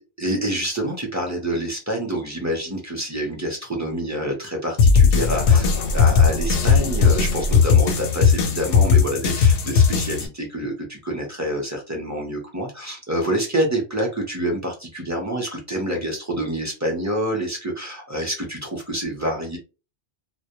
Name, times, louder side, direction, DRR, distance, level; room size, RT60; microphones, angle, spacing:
voice 1, 0.2-19.6, right 1 dB, 20° right, 1 dB, 0.5 m, -27 dB
sound 1, 4.8-10.3, left 6 dB, 85° left, 0.9 m, -17 dB
2.1 x 2.1 x 2.8 m, 0.31 s
omnidirectional pair, 1.1 m